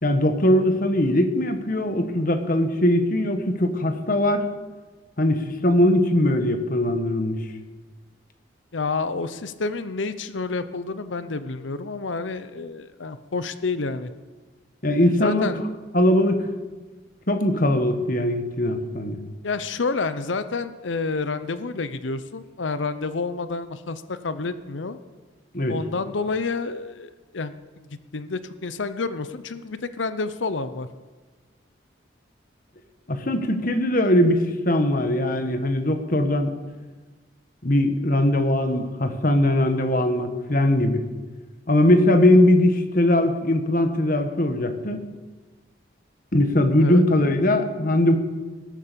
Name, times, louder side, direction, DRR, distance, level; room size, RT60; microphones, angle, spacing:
voice 1, 0.0-4.5 5.2-7.4 14.8-15.5 15.9-16.5 17.3-19.2 25.5-25.8 33.1-36.5 37.6-41.0 41.7-45.0 46.3-48.1, left 1 dB, 45° left, 7 dB, 1.4 m, -20 dB
voice 2, 8.7-14.1 14.9-15.6 19.4-25.0 25.7-27.9 28.1-30.9 46.8-47.0, left 4 dB, 80° left, 12 dB, 0.8 m, -29 dB
19.0 x 8.4 x 6.9 m, 1.3 s
head